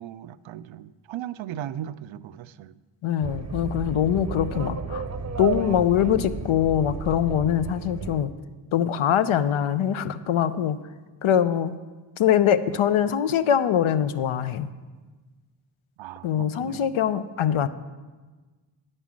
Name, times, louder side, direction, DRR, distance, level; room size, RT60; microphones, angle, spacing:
voice 1, 0.0-2.7 16.0-16.8, right 11 dB, 70° right, 15 dB, 0.5 m, -37 dB
voice 2, 3.0-5.0 5.4-8.3 8.7-10.8 11.2-11.7 12.2-14.7 16.2-17.7, left 9 dB, 75° left, 12 dB, 0.7 m, -23 dB
sound 1, 3.2-8.2, right 5 dB, 35° right, 0.7 m, -33 dB
9.7 x 5.4 x 7.4 m, 1.3 s
cardioid pair, 65°, 50 cm